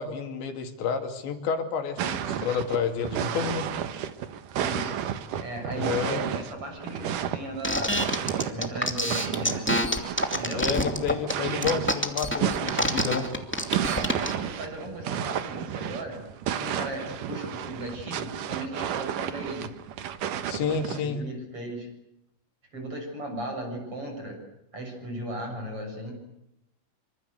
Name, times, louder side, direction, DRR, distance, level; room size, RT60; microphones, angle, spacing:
voice 1, 0.0-3.7 5.8-6.2 10.5-13.3 20.5-21.2, left 6 dB, 70° left, 5 dB, 4.8 m, -30 dB
sound 1, 2.0-21.0, right 9 dB, 65° right, 2.2 m, -32 dB
voice 2, 4.5-4.9 5.4-9.6 10.4-10.7 14.1-19.7 20.5-21.9 22.7-24.4 24.7-26.2, right 1 dB, 30° right, 3 dB, 7.9 m, -37 dB
sound 2, 7.6-14.3, left 1 dB, 10° left, 0.8 m, -26 dB
27.5 x 26.0 x 8.2 m, 0.82 s
omnidirectional pair, 5.4 m